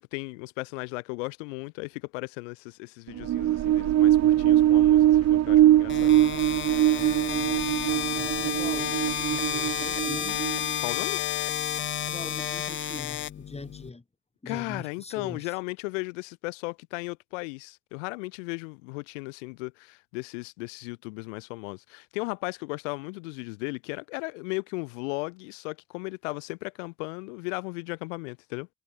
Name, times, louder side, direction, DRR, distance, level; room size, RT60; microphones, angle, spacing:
voice 1, 0.0-6.1 10.8-11.2 14.5-28.7, left 28 dB, 85° left, 0.9 m, -36 dB
sound 1, 3.1-10.8, right 13 dB, 45° right, 0.6 m, -22 dB
sound 2, 5.9-13.9, left 10 dB, 35° left, 0.5 m, -31 dB
voice 2, 7.0-10.4 12.0-14.0 14.4-15.5, left 3 dB, 15° left, 1.9 m, -42 dB
hypercardioid pair, 45°, 36 cm